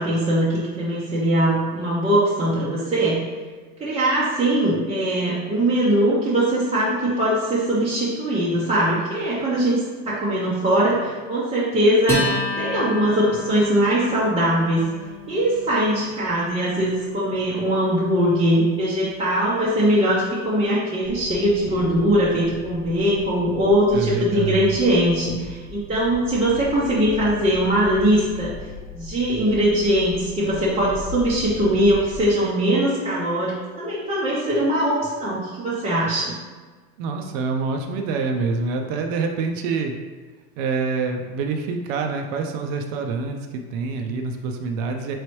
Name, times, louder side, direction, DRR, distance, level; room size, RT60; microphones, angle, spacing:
voice 1, 0.0-3.2 3.8-12.3 12.6-14.8 15.3-28.5 28.9-36.3, right 1 dB, 15° right, -8 dB, 0.5 m, -21 dB
Acoustic guitar, 12.1-18.9, left 3 dB, 5° left, 0.9 m, -31 dB
sound 1, 21.0-32.3, left 2 dB, 40° left, 0.9 m, -38 dB
voice 2, 23.9-24.8 37.0-39.9 40.6-45.1, right 4 dB, 65° right, 4 dB, 0.5 m, -26 dB
3.9 x 3.1 x 3.0 m, 1.4 s
supercardioid pair, 120°, 42 cm